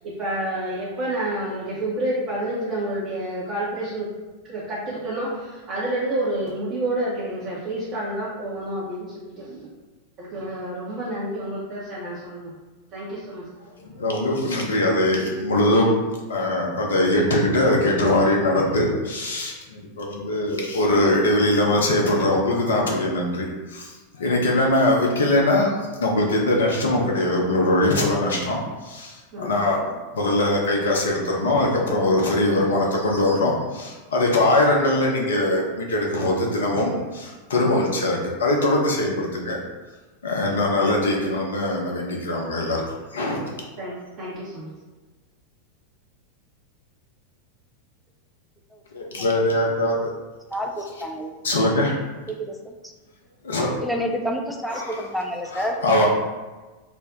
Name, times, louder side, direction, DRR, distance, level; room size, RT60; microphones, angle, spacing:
voice 1, 0.0-4.1 4.4-9.7 10.2-12.5 12.9-13.4 29.3-29.6 37.5-37.8 40.4-40.6 43.8-44.7, right 1 dB, 35° right, -8 dB, 0.7 m, -29 dB
voice 2, 13.8-15.9 16.3-39.6 40.2-42.8 43.1-43.6 48.9-50.1 51.4-52.0 53.4-53.7 54.7-55.0 55.5-56.1, left 1 dB, 65° left, -1 dB, 0.6 m, -22 dB
voice 3, 50.5-51.3 52.3-52.7 53.8-56.1, equal, ahead, 2 dB, 0.3 m, -29 dB
2.5 x 2.1 x 3.4 m, 1.2 s
figure-of-eight pair, 90°, 0 cm